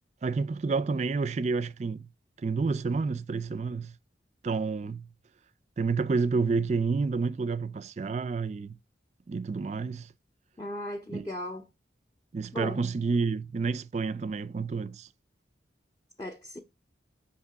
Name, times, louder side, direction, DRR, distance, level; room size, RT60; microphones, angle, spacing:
voice 1, 0.2-2.1 2.4-3.9 4.4-5.0 5.8-8.7 9.3-10.1 11.1-11.3 12.3-15.1, right 4 dB, 35° right, 0.3 m, -29 dB
voice 2, 10.6-11.7 12.5-12.8 16.2-16.6, left 1 dB, 20° left, 0.5 m, -37 dB
5.8 x 2.9 x 5.6 m
head